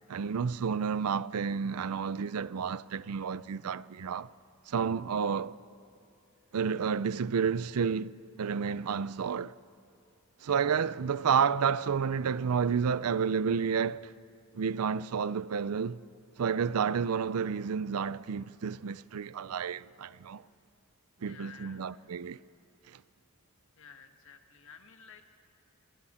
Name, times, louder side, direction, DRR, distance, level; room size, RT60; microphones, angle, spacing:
voice 1, 0.1-4.3 4.7-5.5 6.5-8.1 8.4-9.5 10.4-14.1 14.5-16.0 16.4-20.4 21.2-22.4 22.9-23.0, right 6 dB, 90° right, 0.5 m, -30 dB
voice 2, 21.2-21.9 23.7-25.2, left 6 dB, 60° left, 1.5 m, -53 dB
28.0 x 24.5 x 4.3 m
head